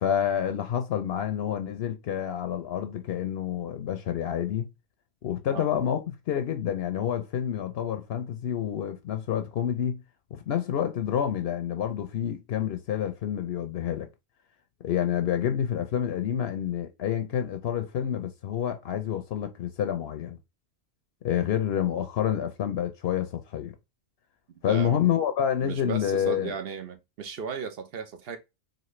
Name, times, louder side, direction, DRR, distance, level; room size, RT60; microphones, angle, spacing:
voice 1, 0.0-4.7 5.2-10.0 10.3-14.1 14.8-20.4 21.2-23.7 24.6-26.6, left 9 dB, 70° left, 0.8 m, -28 dB
voice 2, 24.7-25.1 25.6-28.4, right 6 dB, 65° right, 0.8 m, -35 dB
4.1 x 2.6 x 3.0 m
omnidirectional pair, 1.1 m